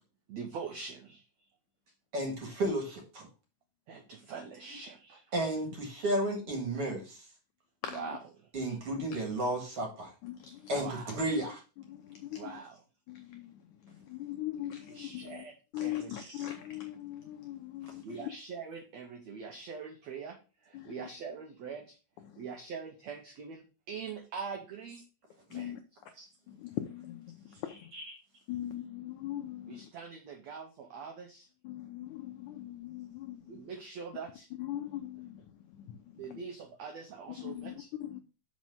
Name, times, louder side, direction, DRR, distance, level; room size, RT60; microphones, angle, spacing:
voice 1, 0.3-1.2 3.9-5.2 7.9-8.2 10.7-11.2 12.4-12.8 14.9-15.5 15.8-16.1 18.0-22.0 22.4-25.0 25.5-25.7 29.7-31.5 33.5-34.5 36.2-37.9, right 6 dB, 85° right, 1.5 m, -43 dB
voice 2, 2.1-3.3 5.3-7.2 8.5-10.1 10.7-11.6 26.2-26.3 27.9-28.0, right 1 dB, 45° right, 2.2 m, -33 dB
voice 3, 7.8-8.2 9.0-9.1 10.2-10.9 11.8-12.6 13.1-15.4 15.7-18.3 20.7-21.1 22.2-22.5 25.5-25.8 26.5-27.9 28.5-29.9 31.6-33.7 34.6-36.4 37.4-38.2, left 13 dB, 90° left, 1.7 m, -41 dB
6.2 x 5.2 x 5.5 m
omnidirectional pair, 4.4 m